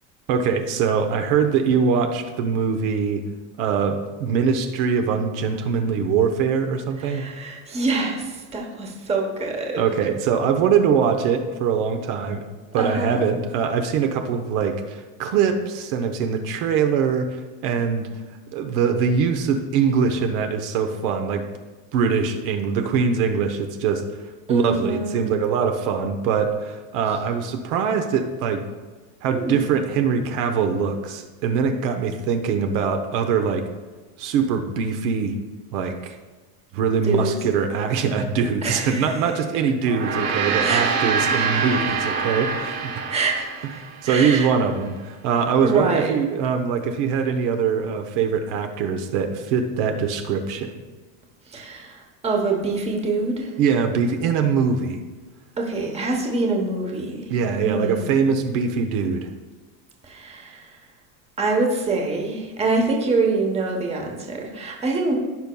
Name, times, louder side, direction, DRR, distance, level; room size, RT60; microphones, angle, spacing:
voice 1, 0.3-3.2 3.6-7.2 9.8-12.4 12.7-18.1 18.5-21.5 21.9-24.2 24.5-28.7 29.2-33.6 34.2-35.4 35.7-36.2 36.7-43.0 44.0-50.7 53.6-55.0 57.3-59.3, right 6 dB, 65° right, 6 dB, 0.9 m, -22 dB
voice 2, 7.0-10.1 12.8-13.2 24.5-25.3 29.3-29.6 37.0-37.4 38.6-39.1 40.6-41.0 41.3-41.6 43.1-44.5 45.6-46.1 51.5-53.5 55.6-57.3 57.6-58.2 60.0-60.7 61.4-65.1, right 3 dB, 15° right, 1 dB, 1.0 m, -25 dB
Gong, 39.8-44.4, right 5 dB, 50° right, 2.2 m, -25 dB
15.0 x 5.4 x 2.3 m, 1.3 s
cardioid pair, 155°, 45 cm